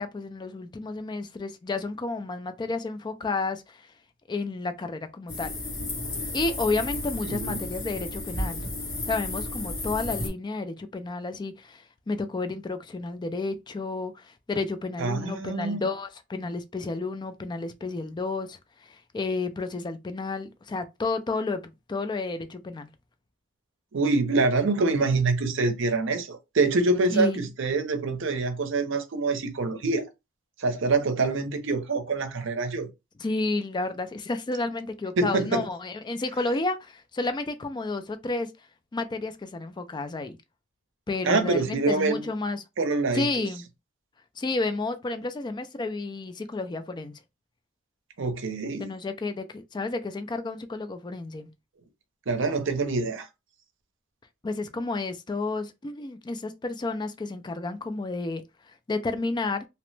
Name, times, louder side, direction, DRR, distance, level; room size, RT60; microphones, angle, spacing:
voice 1, 0.0-3.9 4.3-5.5 6.3-8.6 9.1-22.9 27.1-27.5 33.2-38.5 38.9-40.4 41.1-42.6 43.1-43.7 44.4-47.2 48.8-51.5 54.4-59.7, left 3 dB, 20° left, 0.3 m, -31 dB
sound 1, 5.3-10.3, left 2 dB, 70° left, 1.5 m, -33 dB
voice 2, 7.2-7.6 15.0-15.8 23.9-30.1 30.6-32.9 35.2-35.7 41.2-42.3 42.8-43.5 48.2-48.9 52.3-53.3, right 3 dB, 65° right, 0.6 m, -25 dB
2.9 x 2.1 x 3.1 m
head